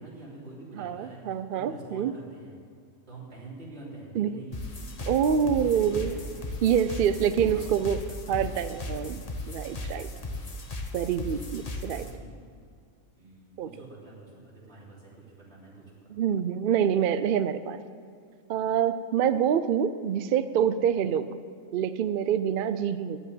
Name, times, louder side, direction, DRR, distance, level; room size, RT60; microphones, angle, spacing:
voice 1, 0.0-1.2 1.5-2.6 3.1-4.6 5.0-6.4 6.9-7.8 8.2-9.4 9.9-10.6 11.9-12.4 13.1-16.1, right 2 dB, 50° right, -6 dB, 3.6 m, -46 dB
voice 2, 0.7-2.1 4.1-4.4 5.1-6.1 6.6-8.0 8.3-10.1 10.9-12.0 13.6-13.7 16.1-17.8 18.5-21.3 21.7-23.2, right 8 dB, 75° right, 12 dB, 0.5 m, -26 dB
sound 1, 4.5-12.1, left 2 dB, 30° left, 1.0 m, -37 dB
10.5 x 8.2 x 8.7 m, 2.3 s
omnidirectional pair, 1.4 m